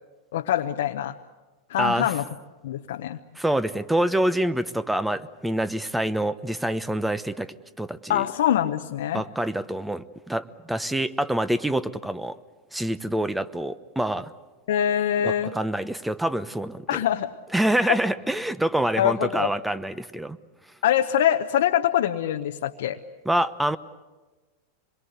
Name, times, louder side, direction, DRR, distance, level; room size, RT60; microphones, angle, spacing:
voice 1, 0.3-1.1 1.7-2.2 2.6-3.2 8.1-9.2 14.7-15.5 16.9-17.3 17.9-18.0 19.0-19.5 20.8-23.0, left 11 dB, 75° left, 4 dB, 0.9 m, -24 dB
voice 2, 1.8-2.1 3.4-8.3 9.1-12.4 12.7-14.3 15.2-17.0 17.5-20.4 23.2-23.8, right 1 dB, 5° right, 13 dB, 1.0 m, -26 dB
26.5 x 22.0 x 8.1 m, 1.2 s
hypercardioid pair, 105°, 0 cm